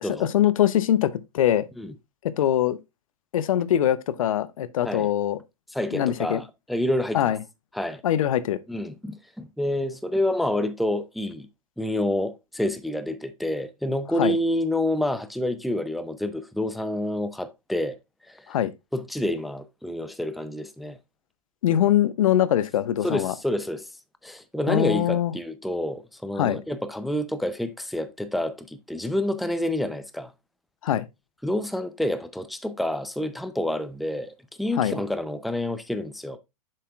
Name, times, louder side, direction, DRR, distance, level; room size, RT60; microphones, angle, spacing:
voice 1, 0.0-1.7 2.2-2.8 3.3-5.4 5.9-6.4 7.1-7.4 8.0-8.6 14.2-14.4 18.5-18.7 21.6-23.3 24.7-25.3 26.4-26.6 30.8-31.1 34.8-35.0, left 11 dB, 65° left, 0.7 m, -22 dB
voice 2, 5.7-7.3 7.7-8.0 8.7-11.5 11.8-18.0 18.3-18.6 18.9-21.0 23.0-23.9 24.2-30.3 31.4-36.4, left 1 dB, ahead, 0.5 m, -28 dB
7.4 x 6.6 x 2.3 m
hypercardioid pair, 105°, 19 cm